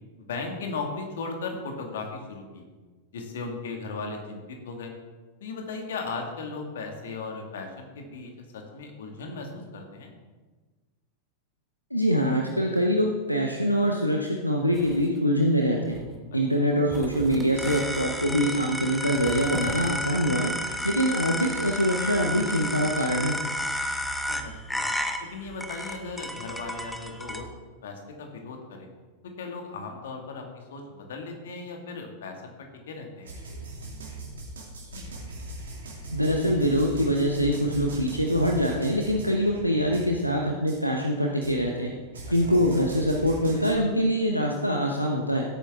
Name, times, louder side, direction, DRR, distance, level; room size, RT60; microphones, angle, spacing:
voice 1, 0.2-2.6 3.1-4.9 5.4-10.1 24.3-24.9 25.2-27.5 27.8-28.9 29.2-33.3, left 4 dB, 60° left, 2 dB, 2.1 m, -37 dB
voice 2, 11.9-16.0 16.3-20.5 20.8-23.4 36.1-41.9 42.3-45.4, equal, 90° left, 1 dB, 1.0 m, -24 dB
sound 1, 14.7-15.2 15.8-16.2 16.5-16.6 16.9-18.5 19.1-19.9, right 2 dB, 10° right, 1.7 m, -40 dB
sound 2, 17.6-27.4, equal, 5° left, 1.0 m, -32 dB
sound 3, 33.2-40.4 40.7-40.8 41.4-43.7, right 1 dB, 65° right, 2.7 m, -40 dB
16.0 x 8.7 x 3.7 m, 1.3 s
figure-of-eight pair, 90°, 0 cm